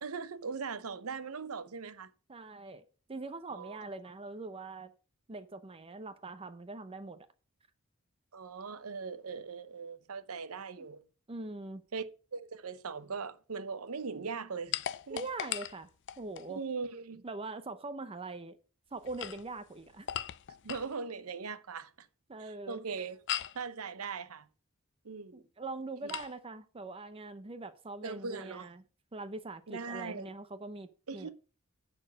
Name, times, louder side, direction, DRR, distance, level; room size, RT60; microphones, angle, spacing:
voice 1, 0.0-2.1 3.5-3.8 8.3-11.0 11.9-12.0 12.3-15.3 16.5-17.2 20.6-22.1 22.4-23.2 23.5-24.5 25.0-25.4 26.0-26.1 28.0-28.7 29.7-30.3 31.1-31.3, right 5 dB, 85° right, 0.8 m, -40 dB
voice 2, 2.3-4.9 5.3-7.3 10.8-10.9 11.3-11.8 15.1-15.9 16.2-16.6 17.2-18.6 18.9-20.1 22.3-22.8 25.3-28.8 29.1-31.3, right 3 dB, 25° right, 0.6 m, -42 dB
sound 1, 14.7-16.5 19.0-20.9 23.3-23.6 26.1-26.3, left 11 dB, 55° left, 0.4 m, -38 dB
10.5 x 4.5 x 6.3 m
head